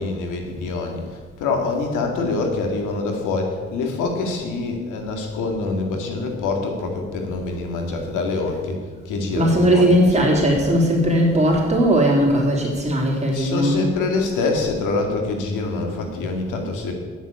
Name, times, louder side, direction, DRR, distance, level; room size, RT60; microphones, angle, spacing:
voice 1, 0.0-8.8 9.1-10.2 13.3-16.9, left 3 dB, 90° left, 3 dB, 2.1 m, -25 dB
voice 2, 9.3-13.8, equal, 20° right, -3 dB, 3.4 m, -18 dB
9.3 x 7.2 x 8.5 m, 1.5 s
cardioid pair, 90°, 30 cm